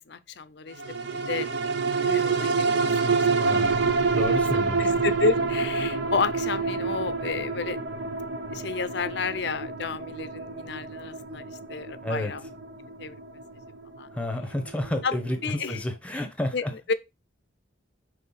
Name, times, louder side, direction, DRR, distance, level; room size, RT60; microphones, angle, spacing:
voice 1, 0.1-0.8 1.3-1.5 2.1-3.1 3.5-3.6 4.3-8.0 8.5-12.4 13.0-13.1 14.0-14.1 15.0-15.1 15.4-15.8 16.5-16.9, left 4 dB, 60° left, 0.6 m, -31 dB
sound 1, 0.8-15.5 15.9-16.0, right 4 dB, 60° right, 0.7 m, -28 dB
voice 2, 3.4-3.9 4.1-4.9 12.0-12.3 14.1-15.4 15.7-16.7, left 1 dB, 5° left, 0.9 m, -30 dB
5.7 x 3.4 x 5.6 m
head